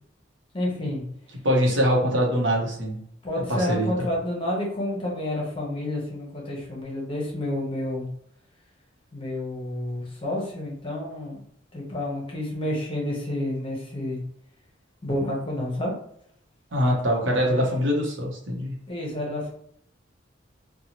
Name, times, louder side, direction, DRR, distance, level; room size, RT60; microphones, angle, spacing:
voice 1, 0.5-1.0 3.2-8.1 9.1-11.4 11.7-14.2 15.0-15.9 17.4-17.7 18.9-19.5, left 1 dB, 30° left, -2 dB, 0.8 m, -29 dB
voice 2, 1.4-3.0 3.5-4.1 16.7-18.8, equal, 75° right, -1 dB, 0.8 m, -23 dB
2.7 x 2.2 x 2.9 m, 0.69 s
head